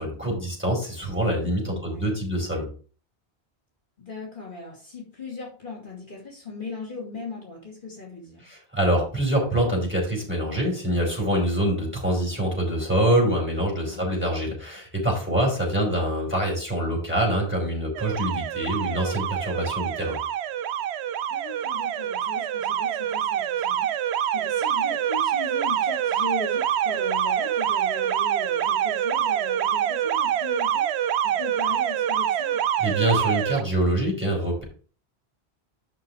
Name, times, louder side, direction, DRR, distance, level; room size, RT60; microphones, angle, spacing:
voice 1, 0.0-2.7 8.5-20.2 32.8-34.6, right 1 dB, 10° right, -2 dB, 5.0 m, -25 dB
voice 2, 1.6-2.1 4.0-8.4 13.8-14.0 15.6-16.1 21.3-23.9 24.3-30.9 31.2-32.6, left 3 dB, 50° left, -2 dB, 2.7 m, -38 dB
Alarm, 18.0-33.6, right 10 dB, 75° right, 0.8 m, -26 dB
11.0 x 6.3 x 3.5 m, 0.39 s
omnidirectional pair, 1.1 m